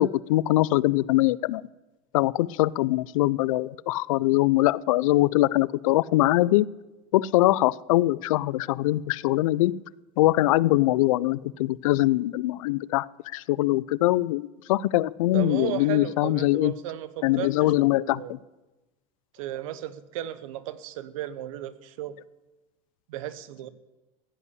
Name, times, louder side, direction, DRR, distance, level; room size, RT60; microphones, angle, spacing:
voice 1, 0.0-1.6 2.1-6.7 7.1-9.8 10.2-13.1 13.3-16.7 17.2-18.4, left 17 dB, 90° left, 21 dB, 0.4 m, -22 dB
voice 2, 15.3-17.7 18.0-18.3 19.4-22.2 23.1-23.7, right 12 dB, 85° right, 15 dB, 1.0 m, -35 dB
15.5 x 5.5 x 9.7 m, 1.1 s
supercardioid pair, 125°, 17 cm